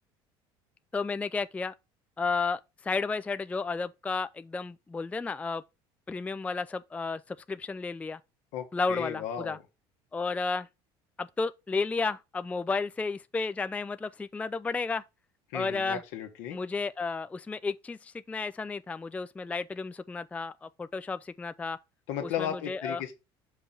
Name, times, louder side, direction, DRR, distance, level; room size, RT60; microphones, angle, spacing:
voice 1, 0.9-1.7 2.2-5.6 6.1-8.2 8.7-9.6 10.1-10.7 11.2-15.0 15.5-16.0 16.5-21.8 22.2-23.0, left 4 dB, 10° left, 0.3 m, -32 dB
voice 2, 8.5-9.6 15.5-16.6 22.1-23.1, left 9 dB, 75° left, 1.4 m, -35 dB
5.7 x 3.8 x 5.8 m
supercardioid pair, 85°, 12 cm